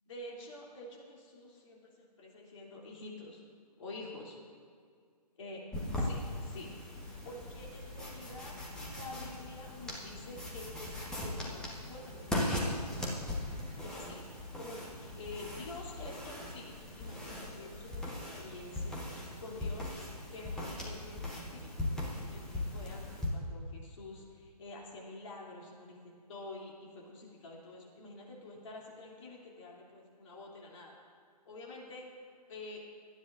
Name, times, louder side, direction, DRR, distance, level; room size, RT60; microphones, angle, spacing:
voice 1, 0.1-3.4 3.8-4.4 5.4-5.6 5.9-13.2 13.8-30.9 31.4-32.1 32.5-32.8, left 2 dB, 50° left, -3 dB, 3.2 m, -48 dB
sound 1, 5.7-23.3, left 1 dB, 5° left, 1.3 m, -39 dB
24.0 x 9.9 x 2.6 m, 2.2 s
figure-of-eight pair, 135°, 21 cm